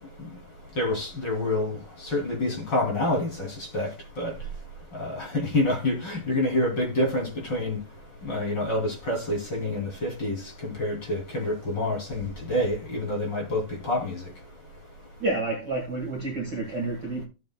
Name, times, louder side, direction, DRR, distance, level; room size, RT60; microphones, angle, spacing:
voice 1, 0.8-1.8 2.0-3.5 3.7-3.9 4.2-4.3 4.9-7.8 8.2-14.3, left 1 dB, 35° left, 3.3 m, -27 dB
voice 2, 15.2-17.2, right 2 dB, 40° right, 1.8 m, -29 dB
14.5 x 6.9 x 2.2 m
omnidirectional pair, 3.9 m